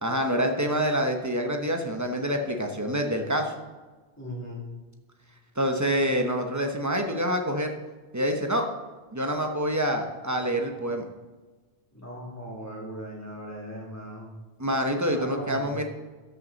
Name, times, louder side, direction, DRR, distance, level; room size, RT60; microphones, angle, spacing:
voice 1, 0.0-3.5 5.6-7.7 8.1-8.7 9.1-11.1 14.6-15.8, equal, 20° right, 3 dB, 0.9 m, -26 dB
voice 2, 4.2-4.6 11.9-14.3 15.0-15.8, equal, 15° left, -4 dB, 2.7 m, -38 dB
13.0 x 6.3 x 4.0 m, 1.3 s
omnidirectional pair, 1.0 m